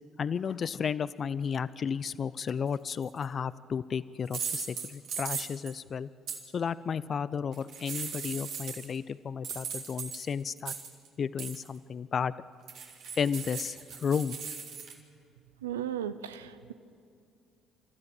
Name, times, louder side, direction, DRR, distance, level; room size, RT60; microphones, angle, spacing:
voice 1, 0.2-6.1 6.5-10.7 11.2-12.3 13.2-14.4, left 6 dB, 45° left, 18 dB, 0.6 m, -33 dB
sound 1, 3.0-3.2 4.3-5.7 6.3-6.4 7.5-9.0 9.4-11.1 11.4-11.7 12.7-14.9, right 6 dB, 65° right, 3.1 m, -38 dB
voice 2, 15.6-16.7, right 10 dB, 90° right, 12 dB, 0.7 m, -35 dB
28.5 x 13.5 x 8.0 m, 2.4 s
hypercardioid pair, 55°, 0 cm